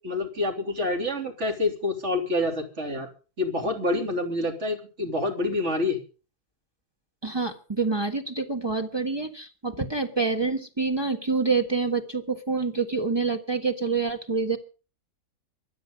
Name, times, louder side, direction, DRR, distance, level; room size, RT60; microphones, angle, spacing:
voice 1, 0.0-3.1 3.4-6.0, left 2 dB, 45° right, 4 dB, 3.5 m, -27 dB
voice 2, 7.2-14.6, right 4 dB, 15° right, 4 dB, 1.5 m, -27 dB
24.0 x 8.8 x 5.2 m, 0.36 s
omnidirectional pair, 1.7 m